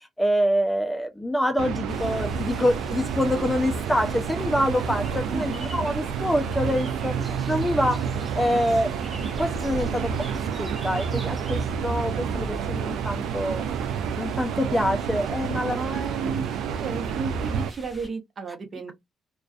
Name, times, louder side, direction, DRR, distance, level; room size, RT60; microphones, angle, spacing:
voice 1, 0.2-8.1 8.4-8.9 9.4-10.1 10.6-13.6 14.2-15.8, equal, 10° left, 0.4 m, -26 dB
sound 1, 1.6-17.7, right 7 dB, 90° right, 0.3 m, -29 dB
sound 2, 1.9-18.1, right 1 dB, 15° right, 0.9 m, -42 dB
voice 2, 5.3-5.7 15.7-16.4 16.8-18.9, right 4 dB, 45° right, 0.8 m, -33 dB
2.4 x 2.2 x 2.4 m
cardioid pair, 90°, 0 cm